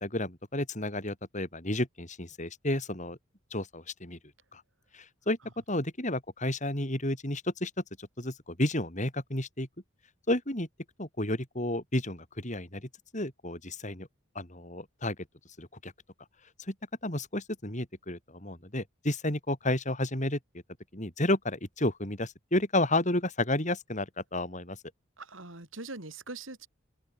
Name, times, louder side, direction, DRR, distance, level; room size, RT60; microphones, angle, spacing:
voice 1, 0.0-3.2 3.5-4.2 4.5-4.6 4.9-5.4 5.7-7.7 8.0-9.7 10.3-10.7 11.0-14.1 14.3-15.2 15.6-15.9 16.7-16.8 17.0-20.4 20.9-24.8, left 1 dB, 35° left, 7.9 m, -31 dB
voice 2, 25.2-26.7, right 3 dB, 75° right, 4.4 m, -42 dB
open air
head